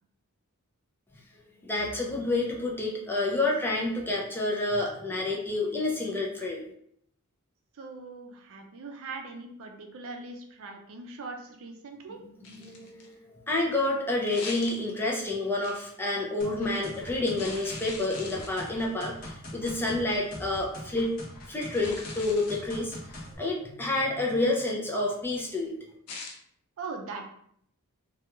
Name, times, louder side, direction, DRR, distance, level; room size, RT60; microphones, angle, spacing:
voice 1, 1.6-6.6 12.4-13.1 13.5-21.1 21.5-25.7, left 2 dB, 10° left, -2 dB, 0.4 m, -29 dB
voice 2, 7.7-12.2 26.8-27.3, right 3 dB, 65° right, 3 dB, 0.4 m, -41 dB
sound 1, 12.4-13.1 14.3-15.2 15.6-16.0 17.4-18.8 19.7-19.9 21.7-22.7 26.1-26.4, left 3 dB, 75° left, 0.5 m, -42 dB
sound 2, 16.4-23.3, left 1 dB, 40° left, 0.7 m, -43 dB
2.3 x 2.3 x 2.9 m, 0.68 s
head